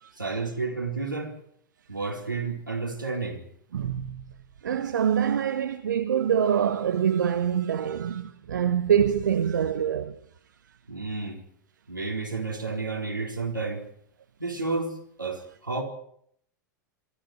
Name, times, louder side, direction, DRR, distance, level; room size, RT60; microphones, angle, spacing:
voice 1, 0.2-1.4 1.9-3.4 10.9-11.4 11.9-13.9 14.4-15.8, right 3 dB, 90° right, 4.4 m, -31 dB
voice 2, 3.7-4.2 4.6-10.2, right 8 dB, 70° right, 1.2 m, -25 dB
23.5 x 14.5 x 7.9 m
figure-of-eight pair, 90°, 10 cm